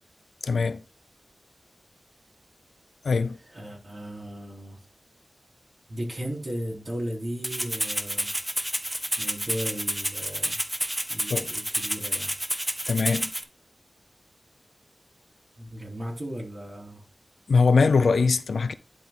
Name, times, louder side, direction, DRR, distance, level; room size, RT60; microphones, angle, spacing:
voice 1, 0.4-0.8 3.0-3.4 11.3-11.5 12.9-13.3 17.5-18.7, left 4 dB, 80° left, 0.5 m, -22 dB
voice 2, 3.5-4.8 5.9-8.3 9.2-10.6 11.1-12.3 15.6-17.0, equal, 50° right, 3.7 m, -36 dB
Rattle (instrument), 7.4-13.4, right 1 dB, 10° right, 0.9 m, -29 dB
11.0 x 3.7 x 3.8 m
wide cardioid pair, 70°, 0 cm